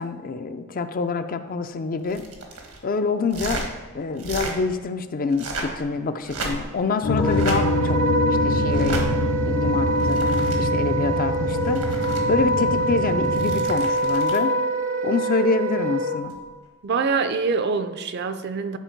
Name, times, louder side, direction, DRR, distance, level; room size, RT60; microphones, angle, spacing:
voice 1, 0.0-2.2 2.8-3.7 3.9-8.0 8.3-9.0 9.5-10.2 10.6-11.8 12.3-14.5 15.0-16.3, left 4 dB, 40° left, 9 dB, 0.4 m, -26 dB
sound 1, 2.0-2.8 3.3-3.7 4.1-4.5 5.3-5.8 6.2-6.8 7.3-7.6 8.7-9.0 9.8-10.6 11.5-12.2 13.2-14.4 16.3-16.5, right 3 dB, 90° right, 1.5 m, -33 dB
sound 2, 7.0-13.7, left 3 dB, 75° left, 0.8 m, -25 dB
Wind instrument woodwind instrument, 7.2-16.2, right 2 dB, 65° right, 0.8 m, -24 dB
voice 2, 16.8-18.8, right 5 dB, 50° right, 10 dB, 0.5 m, -24 dB
10.5 x 4.3 x 4.5 m, 1.4 s
head